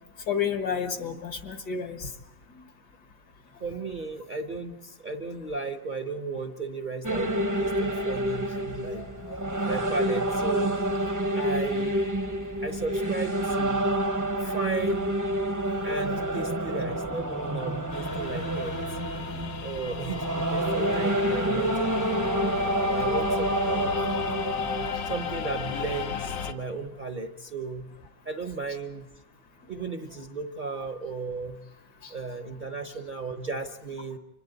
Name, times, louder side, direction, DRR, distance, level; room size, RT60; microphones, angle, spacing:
voice 1, 0.3-2.1 7.9-8.0 8.9-9.1 32.0-32.1, left 7 dB, 65° left, 6 dB, 2.3 m, -30 dB
voice 2, 3.6-9.1 9.6-10.7 11.3-12.0 12.6-13.9 14.4-15.1 15.8-18.8 19.6-22.1 22.8-24.1 25.0-27.9 28.2-29.0 29.7-31.6 32.1-34.2, right 4 dB, 35° right, 5 dB, 0.9 m, -35 dB
sound 1, 7.0-25.2, right 1 dB, 15° right, 0.8 m, -28 dB
sound 2, 17.9-26.5, left 7 dB, 85° left, 1.8 m, -34 dB
30.0 x 26.0 x 4.0 m, 0.93 s
omnidirectional pair, 1.9 m